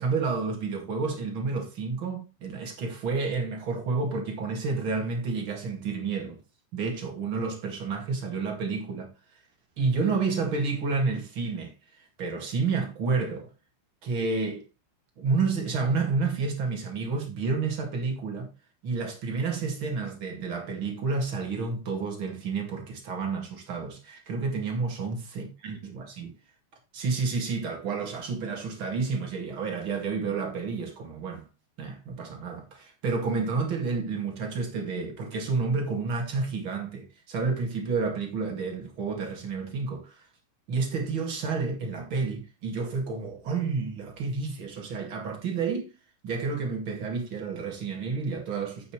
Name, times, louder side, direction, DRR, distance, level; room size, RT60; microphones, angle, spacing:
voice 1, 0.0-6.4 6.7-9.1 9.8-11.7 12.2-13.5 14.0-14.6 15.2-18.5 18.8-26.3 26.9-31.4 31.8-40.2 40.7-45.9 46.2-48.9, right 4 dB, 40° right, 2.0 m, -30 dB
9.3 x 8.4 x 3.2 m
omnidirectional pair, 5.2 m